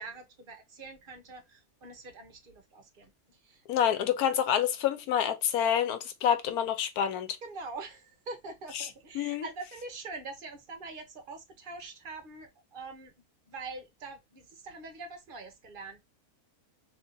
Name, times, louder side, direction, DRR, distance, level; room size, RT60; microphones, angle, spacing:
voice 1, 0.0-3.6 7.4-13.1 13.5-16.0, right 3 dB, 45° right, 0.8 m, -44 dB
voice 2, 3.7-7.3 8.7-8.9 9.1-9.5, left 9 dB, 85° left, 1.2 m, -27 dB
2.8 x 2.6 x 3.8 m
omnidirectional pair, 1.6 m